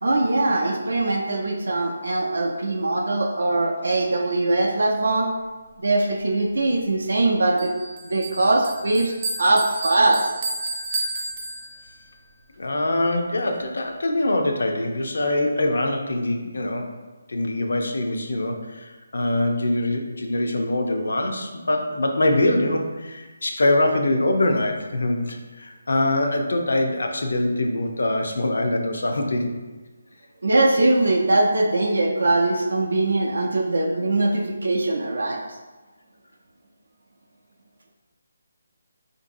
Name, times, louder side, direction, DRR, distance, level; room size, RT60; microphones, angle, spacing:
voice 1, 0.0-5.3 5.8-7.7 8.1-10.3 30.4-35.4, right 2 dB, 80° right, 1 dB, 0.4 m, -21 dB
Bell, 7.6-12.1, right 2 dB, 35° right, 0.6 m, -32 dB
voice 2, 12.6-16.9 17.3-29.5, left 1 dB, 75° left, 3 dB, 0.5 m, -23 dB
3.8 x 2.6 x 2.6 m, 1.2 s
hypercardioid pair, 170°, 0 cm